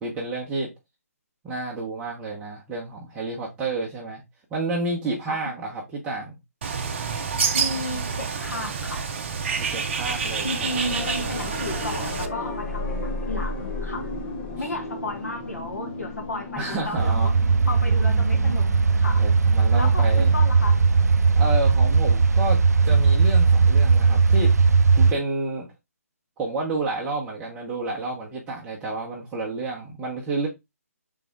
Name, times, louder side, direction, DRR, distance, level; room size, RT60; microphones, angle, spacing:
voice 1, 0.0-0.7 1.4-4.2 4.5-6.4 9.6-10.8 16.6-17.3 19.2-20.3 21.4-24.5 25.0-25.7 26.4-30.5, right 2 dB, 15° right, 1.1 m, -30 dB
Bird, 6.6-12.3, right 5 dB, 45° right, 0.7 m, -28 dB
voice 2, 7.5-9.0 10.4-14.1 14.6-17.3 17.7-19.2 19.7-20.8, left 2 dB, 75° left, 1.8 m, -33 dB
sound 1, 9.9-22.7 25.1-25.2, left 2 dB, 40° left, 1.2 m, -35 dB
sound 2, 17.0-25.1, right 4 dB, 85° right, 0.4 m, -18 dB
4.0 x 3.8 x 3.5 m
figure-of-eight pair, 140°, 8 cm